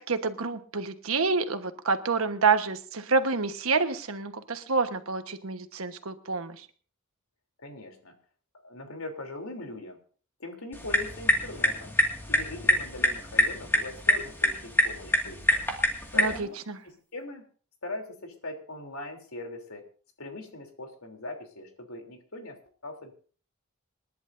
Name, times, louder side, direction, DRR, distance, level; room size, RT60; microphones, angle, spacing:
voice 1, 0.0-6.6 16.1-16.8, right 4 dB, 85° right, 8 dB, 1.3 m, -28 dB
voice 2, 7.6-8.1 8.6-10.0 10.4-11.9 12.3-15.6 16.1-16.6 16.8-17.4 17.8-19.8 20.2-23.1, left 2 dB, 90° left, 3 dB, 3.3 m, -40 dB
sound 1, 10.7-16.4, left 1 dB, 10° left, 2.1 m, -26 dB
27.5 x 11.0 x 2.7 m, 0.41 s
head